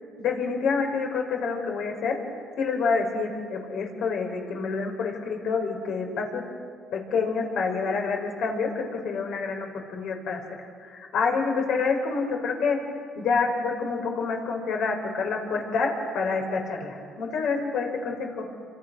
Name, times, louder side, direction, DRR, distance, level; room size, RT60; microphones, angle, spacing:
voice 1, 0.2-2.2 2.6-6.4 6.9-12.8 13.2-18.4, left 4 dB, 65° left, 2 dB, 5.4 m, -27 dB
30.0 x 26.5 x 6.5 m, 2.3 s
cardioid pair, 120°, 0 cm